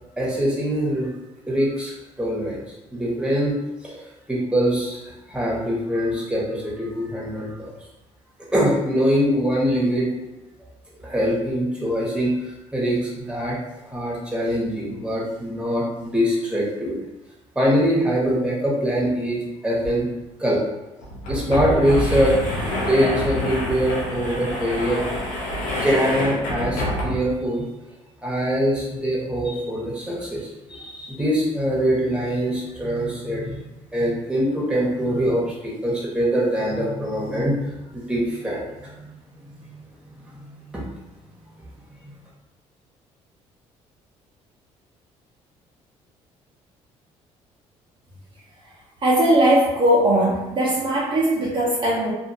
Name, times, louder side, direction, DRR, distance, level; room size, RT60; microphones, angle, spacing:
voice 1, 0.2-1.1 1.5-2.6 2.9-3.5 3.8-7.7 8.5-10.1 11.0-13.6 13.8-17.0 17.5-20.0 20.4-20.6 21.3-22.4 22.8-25.0 25.8-27.6 28.2-33.6 33.9-39.1 40.2-40.8, equal, 5° right, -6 dB, 1.2 m, -23 dB
sound 1, 19.8-19.9 20.2-20.3 21.0-27.4, left 1 dB, 80° left, 0.7 m, -27 dB
voice 2, 49.0-52.1, right 1 dB, 40° right, -7 dB, 0.8 m, -19 dB
2.6 x 2.5 x 2.7 m, 1.0 s
supercardioid pair, 75°, 13 cm